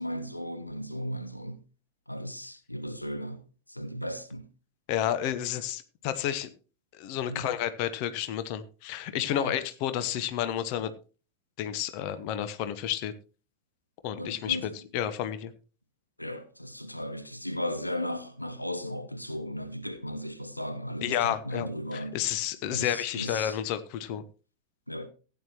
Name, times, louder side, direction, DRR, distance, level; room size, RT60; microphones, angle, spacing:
voice 1, 0.0-1.6 2.1-3.4 3.7-4.5 7.3-7.5 9.4-9.6 14.2-14.6 16.2-22.2 22.7-23.6 24.9-25.1, equal, 85° left, 0.9 m, -36 dB
voice 2, 4.9-6.5 7.0-10.9 11.6-13.1 14.0-15.5 21.0-24.2, left 11 dB, 45° left, 1.0 m, -31 dB
15.5 x 9.4 x 3.0 m
figure-of-eight pair, 90°, 0 cm